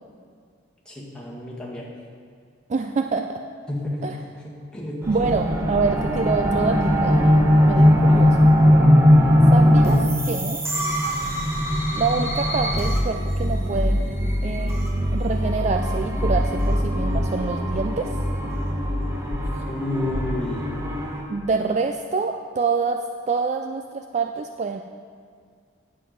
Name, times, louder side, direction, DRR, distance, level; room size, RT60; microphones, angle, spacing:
voice 1, 0.9-1.9 3.7-4.1 4.7-5.0 19.7-20.7, left 1 dB, 5° left, -6 dB, 1.9 m, -30 dB
voice 2, 2.7-3.4 4.0-4.2 5.1-8.4 9.5-10.6 12.0-14.0 14.4-14.8 15.1-18.1 19.5-19.6 21.3-24.8, right 4 dB, 35° right, 5 dB, 0.3 m, -26 dB
sound 1, 5.0-21.2, equal, 15° right, 1.0 m, -20 dB
sound 2, 16.3-16.4 17.1-17.2 19.3-19.4 20.1-20.3, left 1 dB, 85° left, 1.4 m, -30 dB
9.8 x 7.6 x 5.2 m, 2.2 s
head